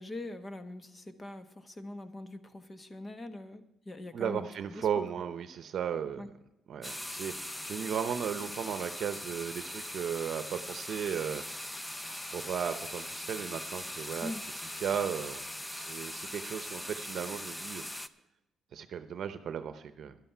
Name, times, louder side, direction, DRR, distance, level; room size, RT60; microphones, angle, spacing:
voice 1, 0.0-5.0 6.2-6.3 14.2-14.4, left 2 dB, 25° left, 9 dB, 1.2 m, -43 dB
voice 2, 4.1-6.3 6.7-7.3 7.6-11.4 12.3-14.3 14.8-15.4 15.7-17.8 18.7-20.2, right 8 dB, 65° right, 10 dB, 0.8 m, -35 dB
sound 1, 6.8-18.1, left 1 dB, 10° left, 0.6 m, -41 dB
12.0 x 11.5 x 5.7 m, 0.91 s
cardioid pair, 90°, 0 cm